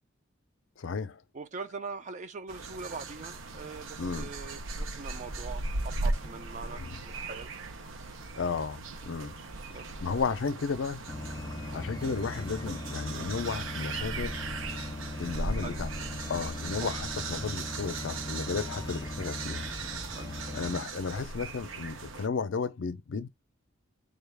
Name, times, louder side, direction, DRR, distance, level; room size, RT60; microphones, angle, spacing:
voice 1, 0.8-1.2 4.0-4.3 6.8-7.0 8.4-9.4 9.7-11.0 11.7-14.4 15.2-15.9 16.3-19.6 20.5-23.3, left 5 dB, 70° left, 0.5 m, -34 dB
voice 2, 1.3-7.5 9.7-10.3 15.6-15.8 16.7-16.9 20.2-20.3, right 4 dB, 40° right, 0.5 m, -42 dB
sound 1, 2.5-22.3, right 3 dB, 85° right, 0.6 m, -38 dB
sound 2, 11.1-20.8, left 2 dB, 20° left, 0.4 m, -39 dB
3.9 x 2.3 x 3.3 m
head